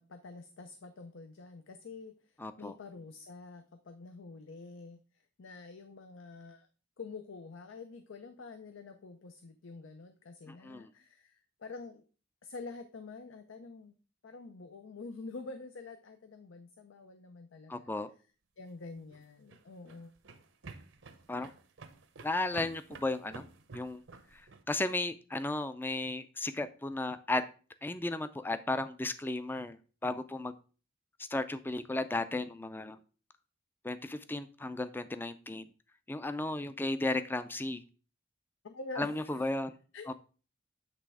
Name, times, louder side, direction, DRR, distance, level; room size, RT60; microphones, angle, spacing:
voice 1, 0.0-6.7 7.0-12.0 12.4-14.0 14.2-17.9 18.6-20.1 32.9-33.0 38.6-39.4 39.9-40.1, left 3 dB, 85° left, 0.6 m, -47 dB
voice 2, 2.4-2.7 10.5-10.9 17.7-18.1 21.3-21.5 22.2-23.4 23.7-24.0 24.3-27.4 27.8-30.5 31.3-33.0 33.8-35.7 36.1-37.8 39.0-39.8, left 2 dB, 10° left, 0.3 m, -34 dB
sound 1, 19.0-24.6, right 3 dB, 75° right, 0.8 m, -51 dB
8.3 x 3.3 x 4.7 m
head